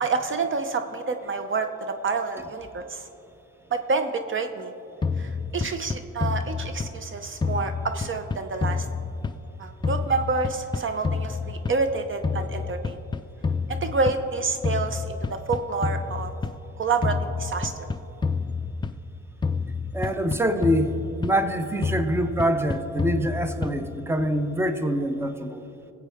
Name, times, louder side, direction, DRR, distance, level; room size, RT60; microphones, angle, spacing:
voice 1, 0.0-1.7 2.0-3.0 3.7-4.7 5.2-8.9 9.6-13.0 13.7-16.3 16.8-17.9, right 4 dB, 40° right, 8 dB, 0.7 m, -28 dB
sound 1, 5.0-7.1 7.4-9.6 9.8-11.9 12.2-14.3 14.6-16.6 17.0-19.1 19.4-21.5 21.8-23.9, left 4 dB, 15° left, 0.3 m, -29 dB
voice 2, 19.9-25.6, equal, 10° right, 8 dB, 0.8 m, -25 dB
19.5 x 8.1 x 3.5 m, 2.9 s
cardioid pair, 90°, 30 cm